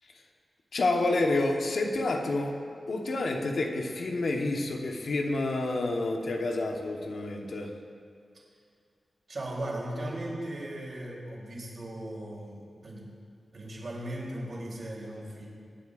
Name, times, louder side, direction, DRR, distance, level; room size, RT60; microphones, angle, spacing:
voice 1, 0.7-7.7, left 2 dB, 65° left, 2 dB, 1.0 m, -29 dB
voice 2, 9.3-13.1 13.5-15.5, right 1 dB, 50° right, -4 dB, 3.2 m, -37 dB
23.5 x 9.6 x 2.5 m, 2.2 s
wide cardioid pair, 145°, 0 cm